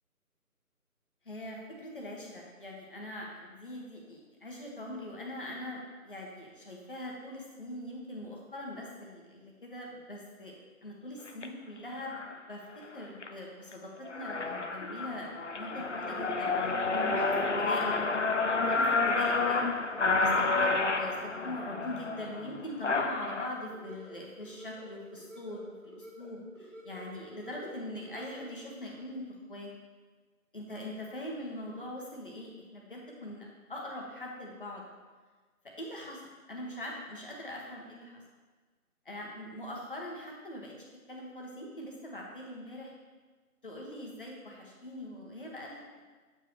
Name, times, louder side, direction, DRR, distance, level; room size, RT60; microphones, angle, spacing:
voice 1, 1.2-10.5 10.8-12.2 12.5-15.3 15.5-19.6 20.2-29.7 30.5-34.8 35.8-36.2 36.5-38.2 39.0-40.7 41.1-42.9 43.6-46.0, left 1 dB, 35° left, -2 dB, 1.2 m, -42 dB
sound 1, 11.3-11.5 12.1-12.4 12.8-13.3 13.7-13.8 14.1-23.5, left 3 dB, 55° left, 0.5 m, -30 dB
sound 2, 23.6-28.6, equal, 55° right, 1.9 m, -50 dB
8.6 x 5.2 x 3.2 m, 1.4 s
figure-of-eight pair, 165°, 44 cm